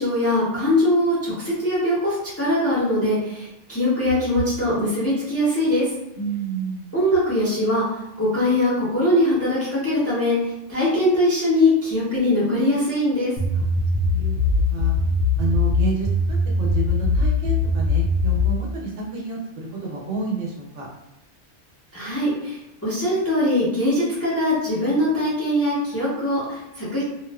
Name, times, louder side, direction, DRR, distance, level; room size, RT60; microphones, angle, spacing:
voice 1, 0.0-5.9 6.9-7.8 8.2-10.3 10.7-13.3 21.9-27.0, left 1 dB, 15° left, -8 dB, 0.6 m, -21 dB
voice 2, 6.1-6.8 13.5-13.7 14.0-14.3 14.7-14.9 15.4-16.1 16.6-20.9, right 4 dB, 70° right, -2 dB, 0.9 m, -29 dB
sound 1, 13.4-18.6, left 3 dB, 60° left, 0.5 m, -21 dB
2.4 x 2.3 x 2.3 m, 0.91 s
omnidirectional pair, 1.3 m